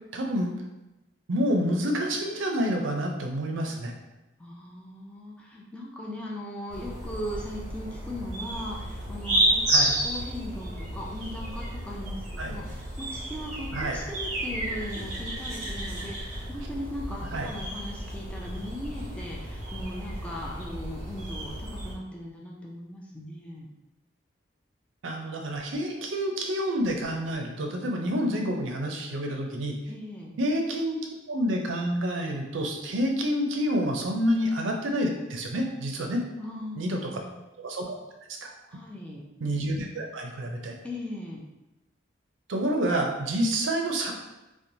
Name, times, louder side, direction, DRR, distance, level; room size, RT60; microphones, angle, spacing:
voice 1, 0.1-0.5 1.3-3.9 9.7-10.0 12.4-12.6 13.7-14.0 17.3-17.5 25.0-29.8 30.4-31.0 31.3-36.2 36.8-37.1 37.6-37.9 38.4-38.5 39.4-40.7 42.5-44.1, equal, 80° right, 2 dB, 0.5 m, -28 dB
voice 2, 4.4-23.7 29.9-30.3 36.4-37.3 38.7-39.3 40.8-41.4, left 1 dB, 5° left, -3 dB, 0.4 m, -39 dB
sound 1, 6.7-21.9, right 1 dB, 35° right, 1.0 m, -32 dB
3.0 x 2.1 x 2.6 m, 1.0 s
head